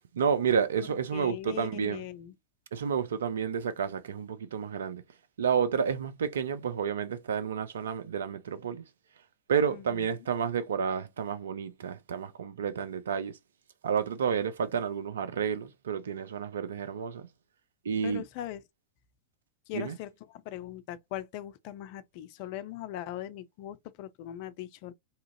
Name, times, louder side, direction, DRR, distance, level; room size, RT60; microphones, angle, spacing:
voice 1, 0.1-2.0 2.7-5.0 5.4-8.8 9.5-13.4 13.8-17.3 17.8-18.2 19.7-20.0, right 7 dB, 65° right, 0.4 m, -30 dB
voice 2, 1.1-2.3 9.7-10.1 18.0-18.6 19.7-24.9, left 13 dB, 45° left, 0.3 m, -40 dB
2.8 x 2.4 x 2.5 m
figure-of-eight pair, 90°, 0 cm